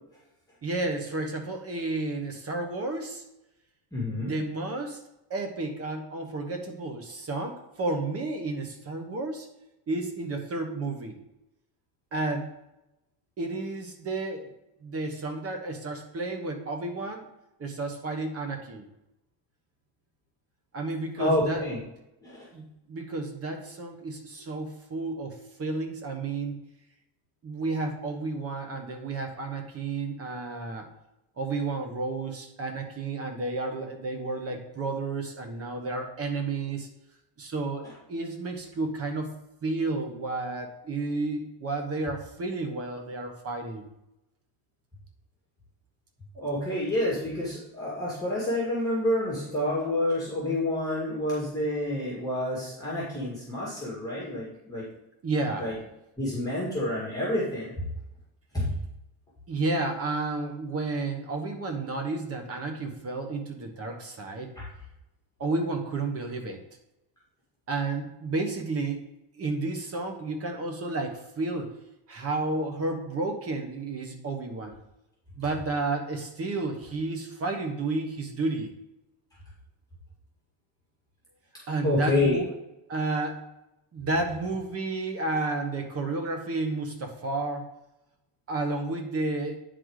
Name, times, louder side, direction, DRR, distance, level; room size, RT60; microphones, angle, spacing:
voice 1, 0.6-3.2 4.1-5.0 5.3-9.5 9.9-11.2 12.1-12.5 13.4-14.5 14.8-17.3 17.6-18.9 20.7-21.6 22.5-26.5 27.4-30.9 31.4-36.9 37.4-39.3 39.6-43.9 55.2-55.7 59.5-64.5 65.4-66.6 67.7-69.0 69.3-71.8 72.1-74.7 75.4-78.7 81.7-82.5 82.9-83.5 83.9-87.7 88.5-89.6, right 3 dB, 30° right, 4 dB, 1.2 m, -31 dB
voice 2, 3.9-4.3 21.2-21.8 22.2-22.5 46.4-54.8 55.6-55.7 56.2-57.8 58.5-58.8 64.6-64.7 81.8-82.4, left 1 dB, 5° left, -7 dB, 2.0 m, -28 dB
9.6 x 4.1 x 4.8 m, 0.90 s
cardioid pair, 155°, 50 cm